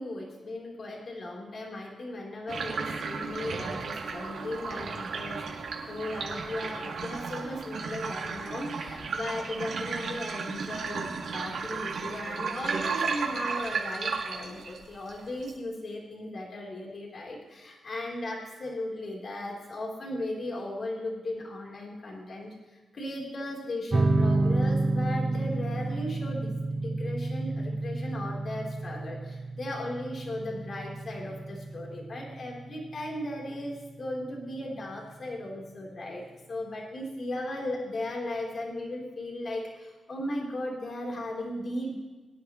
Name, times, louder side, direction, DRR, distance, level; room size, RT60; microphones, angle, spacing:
voice 1, 0.0-22.5 22.9-36.2 36.5-42.0, left 1 dB, 50° left, -1 dB, 3.6 m, -37 dB
sound 1, 2.5-15.5, right 5 dB, 75° right, 2.2 m, -34 dB
sound 2, 23.9-34.9, right 2 dB, 30° right, 0.9 m, -30 dB
22.5 x 10.5 x 3.1 m, 1.2 s
cardioid pair, 100°, 0 cm